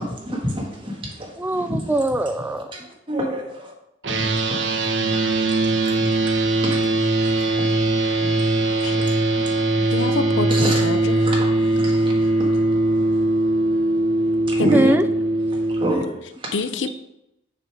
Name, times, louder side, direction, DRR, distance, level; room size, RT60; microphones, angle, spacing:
voice 1, 0.0-1.3 1.7-1.8 2.7-2.8 3.1-3.7 4.5-5.2 6.0-6.3 6.6-6.8 7.2-7.7 8.2-8.3 8.8-9.1 10.5-10.8 11.2-12.5 14.5-14.8 15.7-16.5, right 1 dB, 25° right, -1 dB, 1.6 m, -28 dB
voice 2, 1.4-2.7 9.3-9.9 14.2-14.4 14.7-15.0, right 1 dB, 10° right, 9 dB, 0.3 m, -23 dB
sound 1, 4.0-15.9, right 2 dB, 60° right, 1.0 m, -20 dB
voice 3, 9.9-11.3 14.6-15.0 16.5-16.9, left 3 dB, 65° left, 10 dB, 0.6 m, -26 dB
6.7 x 5.2 x 4.9 m, 0.86 s
head